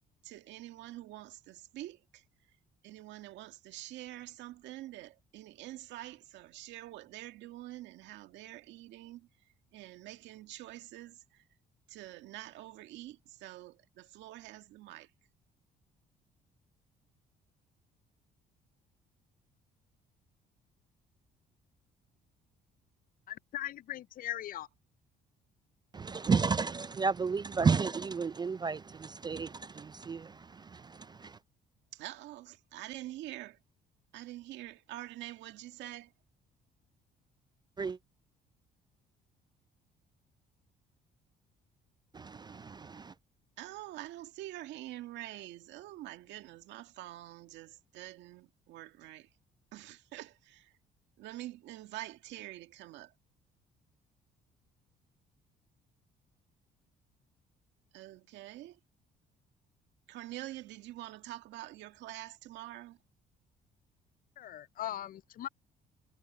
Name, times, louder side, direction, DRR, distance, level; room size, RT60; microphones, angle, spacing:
voice 1, 0.2-2.6 2.8-11.6 11.9-15.1 31.9-33.6 34.1-36.1 43.6-49.4 49.7-50.8 51.2-53.1 57.9-58.8 60.1-63.0, right 15 dB, 80° right, 2.0 m, -46 dB
voice 2, 23.3-24.7 64.4-65.5, left 13 dB, 50° left, 0.4 m, -39 dB
voice 3, 25.9-31.4 37.8-38.0 42.1-43.1, right 5 dB, 25° right, 0.3 m, -32 dB
supercardioid pair, 75°, 18 cm